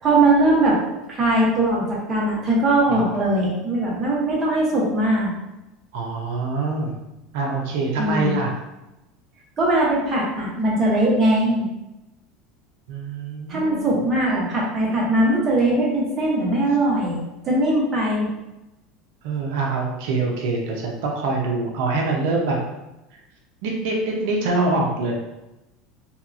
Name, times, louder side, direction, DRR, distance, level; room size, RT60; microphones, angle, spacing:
voice 1, 0.0-0.8 1.1-5.3 8.0-8.4 9.6-11.7 13.5-17.2 17.4-18.3, right 1 dB, 30° right, -4 dB, 1.0 m, -20 dB
voice 2, 5.9-6.9 7.3-8.5 12.9-14.0 19.2-22.6 23.6-25.1, right 3 dB, 70° right, -1 dB, 0.5 m, -24 dB
2.8 x 2.3 x 2.4 m, 0.98 s
supercardioid pair, 115°, 0 cm